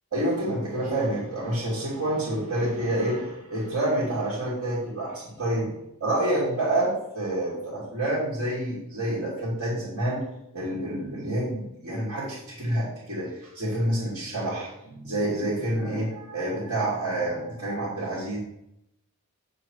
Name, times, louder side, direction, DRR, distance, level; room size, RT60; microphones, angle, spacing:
voice 1, 0.1-5.7 6.0-10.2 10.5-18.4, right 1 dB, 85° right, -8 dB, 2.6 m, -28 dB
6.9 x 3.9 x 4.5 m, 0.82 s
head